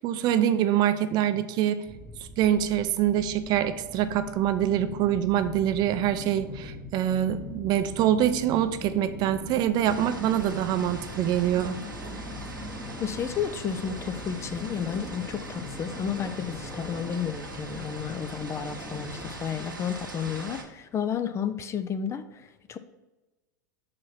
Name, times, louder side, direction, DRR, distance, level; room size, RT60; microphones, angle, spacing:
voice 1, 0.0-1.8 2.4-11.8, right 11 dB, 40° right, 11 dB, 0.6 m, -25 dB
sound 1, 1.9-19.3, left 2 dB, 5° left, 0.9 m, -42 dB
sound 2, 9.8-20.6, right 2 dB, 90° right, 1.2 m, -41 dB
voice 2, 13.0-22.8, left 8 dB, 25° left, 11 dB, 0.5 m, -32 dB
5.8 x 5.0 x 5.8 m, 1.1 s
figure-of-eight pair, 90°, 11 cm